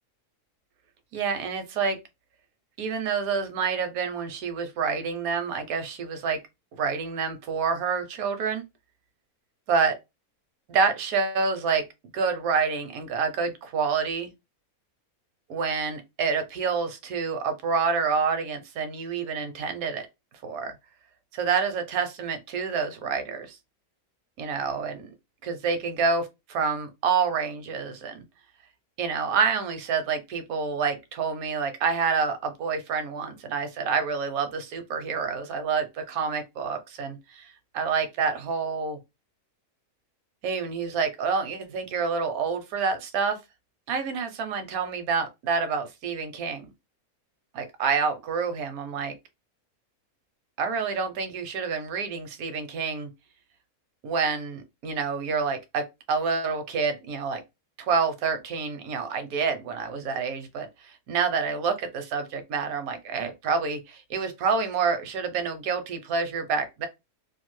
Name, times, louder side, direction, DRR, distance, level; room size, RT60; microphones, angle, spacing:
voice 1, 1.1-2.0 2.8-6.4 6.8-8.6 9.7-10.0 10.7-11.8 12.1-14.3 15.5-20.1 20.4-20.7 21.3-23.6 24.4-25.1 25.4-28.2 29.0-39.0 40.4-43.4 43.9-46.7 47.5-49.1 50.6-53.1 54.0-57.4 57.8-66.9, right 5 dB, 75° right, 1.1 m, -28 dB
2.8 x 2.3 x 3.1 m
omnidirectional pair, 1.5 m